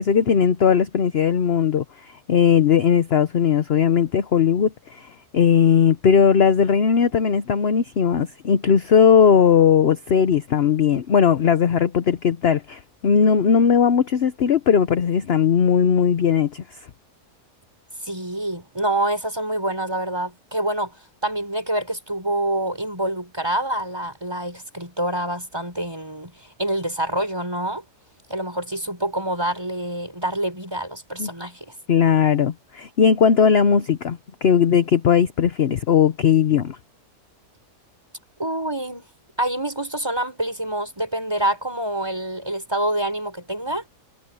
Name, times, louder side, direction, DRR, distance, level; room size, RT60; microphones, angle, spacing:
voice 1, 0.0-16.6 31.2-31.3 31.9-36.8, left 7 dB, 50° left, 0.9 m, -18 dB
voice 2, 18.0-21.0 21.2-27.8 28.3-31.7 38.4-39.1 39.4-43.8, right 1 dB, 15° right, 6.0 m, -26 dB
omnidirectional pair, 1.7 m